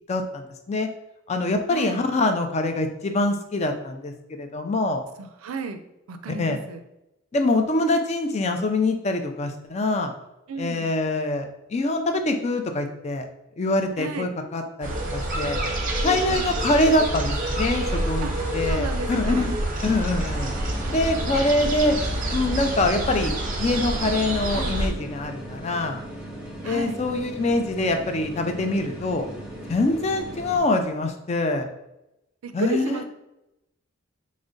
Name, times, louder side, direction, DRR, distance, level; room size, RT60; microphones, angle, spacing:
voice 1, 0.1-0.9 1.3-4.1 4.4-5.0 6.3-6.6 7.3-10.1 10.6-13.2 13.6-15.6 16.0-19.5 19.8-20.5 20.9-22.0 22.3-23.3 23.6-26.0 26.6-29.3 29.7-31.7 32.5-33.0, left 2 dB, 30° left, 6 dB, 0.4 m, -24 dB
voice 2, 1.7-2.0 5.2-5.8 6.1-6.8 10.5-10.9 14.0-14.3 16.0-16.5 18.2-19.5 24.5-24.8 26.6-27.0 32.4-33.0, right 4 dB, 90° right, 9 dB, 0.4 m, -33 dB
sound 1, 14.8-24.9, right 1 dB, 40° right, 0.6 m, -27 dB
sound 2, 19.9-30.6, right 1 dB, 5° right, 0.7 m, -38 dB
3.7 x 2.1 x 3.7 m, 0.89 s
head